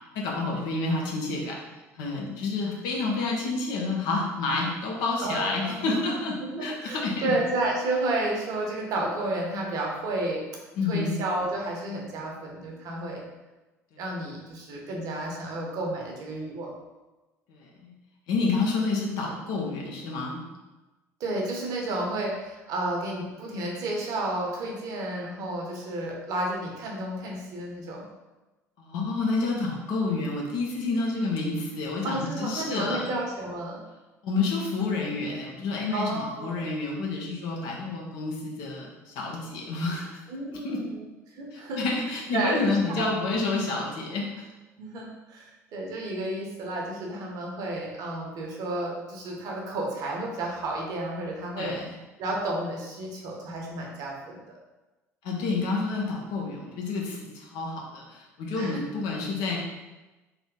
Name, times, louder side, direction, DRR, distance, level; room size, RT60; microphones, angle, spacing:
voice 1, 0.1-1.6 2.0-7.3 10.8-11.1 13.9-14.0 17.5-17.9 18.3-20.4 28.8-33.1 34.2-40.1 40.6-40.8 41.5-44.5 51.6-51.8 55.2-59.6, left 3 dB, 55° left, -1 dB, 0.9 m, -29 dB
voice 2, 5.2-10.4 10.8-13.2 14.0-16.7 21.2-28.0 32.0-33.8 35.9-36.6 40.3-41.8 42.3-43.4 44.8-51.7 52.2-54.4 58.5-58.8, right 2 dB, 50° right, -1 dB, 0.9 m, -32 dB
3.4 x 3.0 x 3.7 m, 1.1 s
figure-of-eight pair, 60°, 8 cm